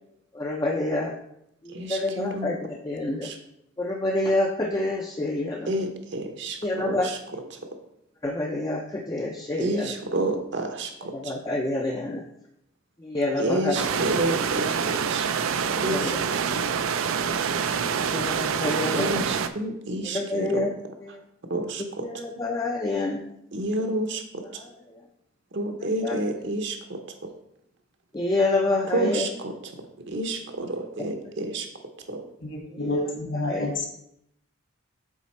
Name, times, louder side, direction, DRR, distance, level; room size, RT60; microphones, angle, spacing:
voice 1, 0.3-1.1 1.6-3.3 3.8-5.7 6.6-7.5 8.2-9.9 11.1-12.2 13.0-13.8 15.7-16.1 17.9-19.3 20.0-20.7 21.0-21.2 22.0-23.2 24.5-24.7 25.8-26.2 28.1-29.3 31.0-31.1 33.4-33.7, left 2 dB, 20° left, 1 dB, 0.4 m, -28 dB
voice 2, 1.7-2.5 3.2-3.4 5.7-6.6 6.8-7.2 9.6-11.3 13.4-15.3 15.8-16.1 16.4-16.5 18.9-20.7 21.5-22.1 23.5-24.4 25.5-27.3 28.9-29.5 30.1-31.7 32.1-32.2, right 1 dB, 60° right, 5 dB, 0.8 m, -29 dB
sound 1, 13.7-19.5, right 6 dB, 80° right, 0.4 m, -26 dB
voice 3, 32.4-33.9, left 2 dB, 60° left, 1 dB, 1.7 m, -29 dB
7.3 x 4.0 x 4.2 m, 0.77 s
head